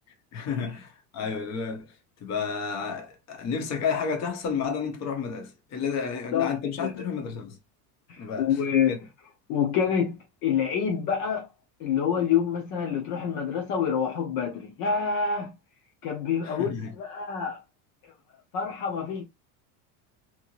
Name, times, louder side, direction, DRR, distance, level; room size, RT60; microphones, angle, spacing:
voice 1, 0.3-1.9 2.2-7.6 8.2-8.5 8.9-9.0 16.4-16.9, left 6 dB, 35° left, 1.2 m, -31 dB
voice 2, 8.1-9.0 9.5-11.5 11.8-15.5 16.0-17.6 18.0-18.1 18.5-19.2, left 7 dB, 50° left, 1.0 m, -27 dB
3.5 x 3.1 x 2.5 m
supercardioid pair, 145°, 45 cm